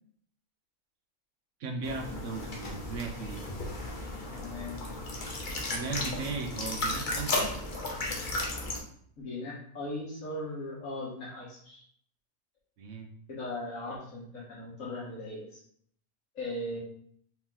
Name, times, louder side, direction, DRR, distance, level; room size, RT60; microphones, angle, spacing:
voice 1, 1.6-3.5 5.7-7.5 12.8-13.1, right 4 dB, 70° right, 3 dB, 1.1 m, -37 dB
sound 1, 1.8-8.8, left 2 dB, 45° left, 0.8 m, -35 dB
voice 2, 4.3-4.8 9.2-11.8 13.3-15.6 16.3-16.8, left 1 dB, 90° left, -6 dB, 2.0 m, -38 dB
4.5 x 2.9 x 3.7 m, 0.63 s
omnidirectional pair, 1.4 m